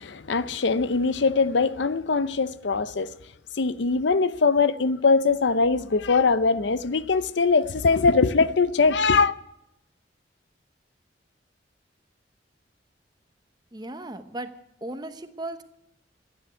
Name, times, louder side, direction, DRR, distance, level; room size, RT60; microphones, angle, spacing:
voice 1, 0.0-3.1 3.5-9.3, left 4 dB, 75° left, 0.6 m, -22 dB
voice 2, 13.7-15.6, right 1 dB, 20° right, 1.0 m, -36 dB
14.0 x 9.4 x 9.2 m
head